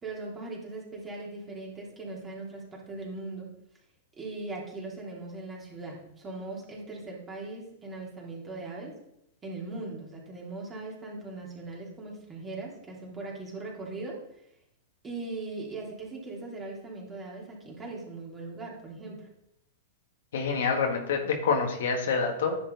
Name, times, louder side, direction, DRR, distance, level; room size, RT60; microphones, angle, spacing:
voice 1, 0.0-3.5 4.2-8.9 9.4-14.2 15.0-19.2, right 3 dB, 20° right, -3 dB, 3.3 m, -39 dB
voice 2, 20.3-22.6, left 5 dB, 70° left, 3 dB, 1.7 m, -27 dB
10.5 x 6.2 x 4.0 m, 0.79 s
hypercardioid pair, 110°, 0 cm